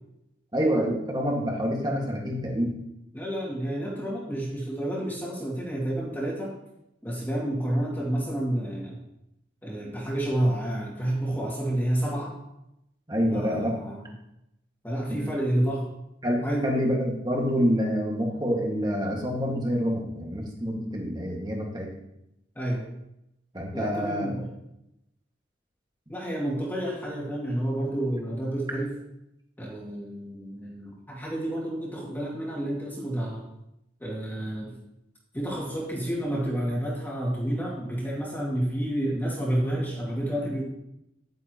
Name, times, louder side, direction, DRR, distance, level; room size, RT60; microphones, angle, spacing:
voice 1, 0.5-2.7 13.1-13.8 15.1-15.2 16.2-21.9 23.5-24.3, equal, 20° right, -1 dB, 1.9 m, -27 dB
voice 2, 3.1-6.5 7.0-9.0 9.6-12.3 13.3-14.1 14.8-15.9 16.4-16.7 22.6-22.8 23.7-24.5 26.1-28.9 29.6-33.5 34.0-34.8 35.3-40.6, right 1 dB, 10° left, -5 dB, 2.3 m, -29 dB
10.5 x 9.4 x 3.0 m, 0.84 s
head